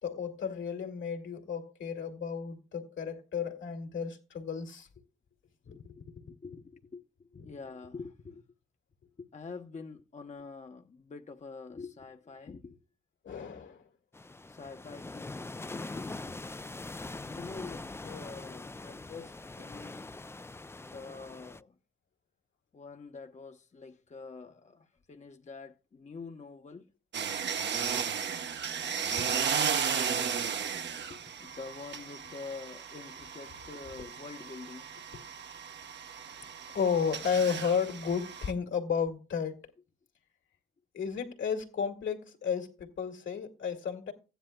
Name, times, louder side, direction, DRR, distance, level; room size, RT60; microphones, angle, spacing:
voice 1, 0.0-4.9 5.7-6.1 7.4-7.5 13.2-13.9 29.1-29.8 35.1-35.2 36.4-36.5 36.7-39.7 40.9-44.1, left 6 dB, 70° left, 2.4 m, -33 dB
voice 2, 5.7-8.4 9.2-12.8 14.5-15.3 15.6-16.4 17.1-20.0 20.8-21.7 22.7-26.9 31.1-35.0, left 4 dB, 35° left, 1.0 m, -46 dB
sound 1, 14.1-21.6, left 2 dB, 10° left, 0.4 m, -43 dB
sound 2, 27.1-38.5, right 7 dB, 60° right, 1.0 m, -35 dB
15.5 x 10.0 x 2.2 m
supercardioid pair, 55°, 20 cm